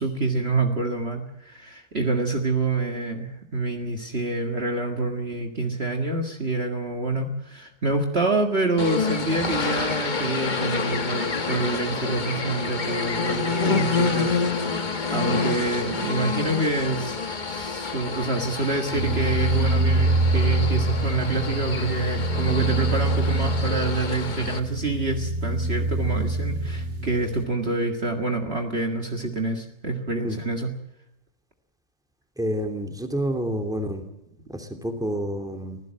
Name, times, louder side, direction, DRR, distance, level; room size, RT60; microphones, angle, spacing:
voice 1, 0.0-14.4 14.7-30.7, right 3 dB, 40° right, 3 dB, 2.1 m, -27 dB
sound 1, 8.8-24.6, left 4 dB, 30° left, 1.3 m, -28 dB
sound 2, 18.9-27.4, right 2 dB, 85° right, 2.2 m, -25 dB
voice 2, 32.4-34.0 34.5-35.8, equal, ahead, 5 dB, 2.7 m, -28 dB
24.5 x 16.5 x 7.5 m, 0.86 s
omnidirectional pair, 1.7 m